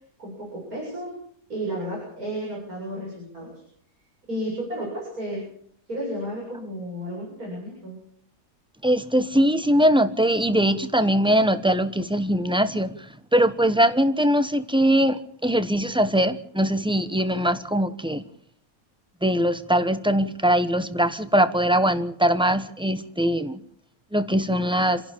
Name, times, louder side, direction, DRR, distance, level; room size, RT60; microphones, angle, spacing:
voice 1, 0.2-1.1 1.5-3.5 4.3-5.5 5.9-8.0, equal, 85° right, -3 dB, 8.4 m, -32 dB
voice 2, 8.8-13.0 13.3-18.2 19.2-23.6 24.1-25.0, equal, 5° right, 11 dB, 1.0 m, -21 dB
29.0 x 11.5 x 8.7 m, 0.66 s
omnidirectional pair, 1.5 m